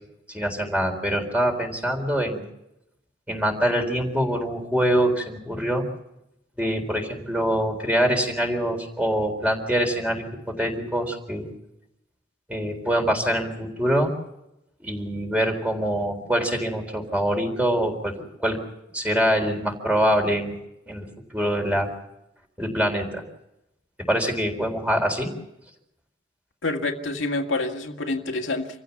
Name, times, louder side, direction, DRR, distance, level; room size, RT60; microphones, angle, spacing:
voice 1, 0.3-2.5 3.3-5.8 6.6-11.5 12.5-14.1 14.8-18.1 18.4-18.6 18.9-20.6 20.9-21.1 21.3-21.9 22.6-23.2 24.1-25.3, equal, 5° right, 3 dB, 4.0 m, -24 dB
voice 2, 26.6-28.7, left 2 dB, 85° left, 3 dB, 2.0 m, -27 dB
26.5 x 15.5 x 7.1 m, 0.85 s
head